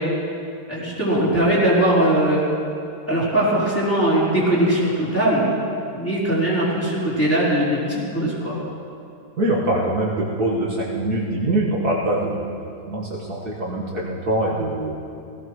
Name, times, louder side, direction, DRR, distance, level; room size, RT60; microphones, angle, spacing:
voice 1, 0.7-2.4 3.1-5.4 5.9-8.6, right 1 dB, 5° left, -9 dB, 4.2 m, -20 dB
voice 2, 9.4-12.5 12.9-14.9, right 1 dB, 60° right, -5 dB, 2.2 m, -23 dB
18.0 x 16.5 x 3.2 m, 2.5 s
omnidirectional pair, 1.9 m